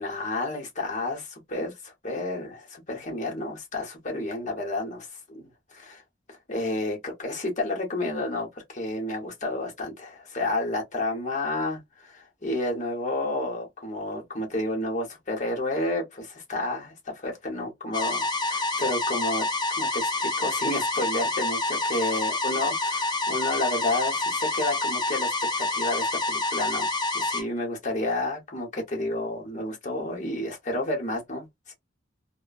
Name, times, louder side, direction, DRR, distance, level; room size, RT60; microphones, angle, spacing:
voice 1, 0.0-6.0 6.3-19.5 19.8-26.9 27.1-31.7, left 2 dB, 35° left, 1.0 m, -31 dB
sound 1, 17.9-27.4, left 2 dB, 20° left, 0.7 m, -27 dB
2.8 x 2.2 x 2.4 m
head